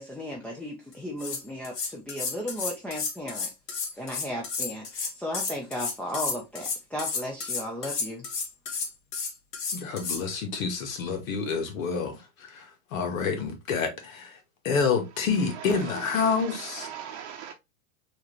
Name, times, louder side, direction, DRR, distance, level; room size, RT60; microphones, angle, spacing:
voice 1, 0.0-3.5 3.9-8.2, equal, 5° left, 0.6 m, -35 dB
sound 1, 0.9-1.0 1.2-10.2, left 5 dB, 30° left, 1.4 m, -32 dB
voice 2, 9.7-14.4 14.6-16.9, left 5 dB, 75° left, 1.7 m, -28 dB
voice 3, 15.5-17.5, right 9 dB, 55° right, 0.8 m, -40 dB
4.7 x 3.0 x 3.0 m
hypercardioid pair, 125°, 40 cm